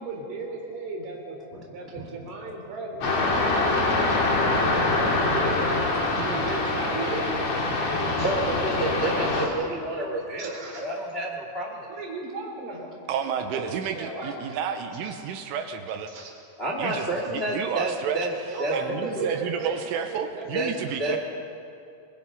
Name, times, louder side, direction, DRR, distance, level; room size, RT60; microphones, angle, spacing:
voice 1, 0.0-1.4 1.7-3.9 4.9-7.5 8.1-8.3 9.3-9.5 10.4-10.9 11.9-12.9 13.5-14.4 15.0-15.1 16.1-16.3 16.9-17.0 17.3-17.4 18.5-20.5 20.9-21.2, right 3 dB, 55° right, 0 dB, 5.1 m, -36 dB
sound 1, 3.0-9.5, left 2 dB, 45° left, 2.7 m, -24 dB
voice 2, 6.1-6.4 7.8-11.7 16.6-18.3 18.6-19.3 20.5-21.2, right 1 dB, 85° left, -1 dB, 0.5 m, -30 dB
voice 3, 13.1-16.1 16.8-18.2 18.7-21.2, right 8 dB, 80° right, 6 dB, 3.3 m, -31 dB
23.0 x 22.5 x 5.5 m, 2.5 s
omnidirectional pair, 5.9 m